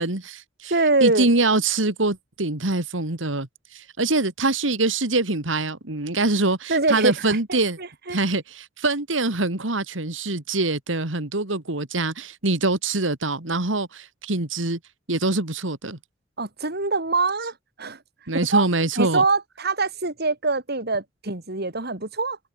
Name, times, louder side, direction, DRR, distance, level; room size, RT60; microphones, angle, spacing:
voice 1, 0.0-0.7 1.0-7.8 8.1-14.8 15.1-16.0 18.3-19.2, right 2 dB, 75° right, 2.6 m, -24 dB
voice 2, 0.7-1.3 6.7-7.4 7.8-8.2 16.4-17.5 17.8-18.0 18.5-18.7 19.0-22.4, right 3 dB, 55° right, 3.8 m, -23 dB
head